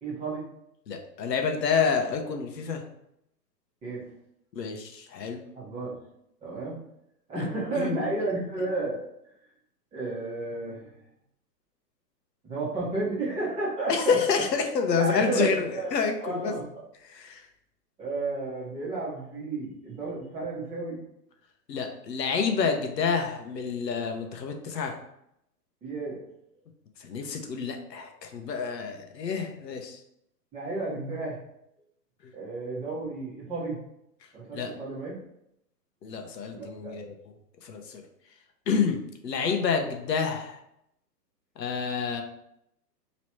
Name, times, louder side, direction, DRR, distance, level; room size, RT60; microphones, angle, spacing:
voice 1, 0.0-0.5 3.8-4.0 5.5-5.9 6.4-6.8 7.3-9.0 9.9-10.9 12.4-14.2 15.0-15.9 16.2-16.7 18.0-21.0 25.8-26.2 30.5-31.4 32.3-33.8 34.3-35.1 36.5-36.9, right 3 dB, 10° right, -6 dB, 1.0 m, -32 dB
voice 2, 0.9-2.8 4.5-5.4 7.3-7.5 7.7-8.1 13.9-16.6 17.0-17.4 21.7-25.0 27.0-30.0 32.2-32.3 34.5-34.7 36.0-37.3 37.6-38.0 38.7-40.6 41.6-42.2, left 5 dB, 75° left, 4 dB, 0.9 m, -28 dB
3.1 x 3.0 x 4.3 m, 0.78 s
hypercardioid pair, 135°, 50 cm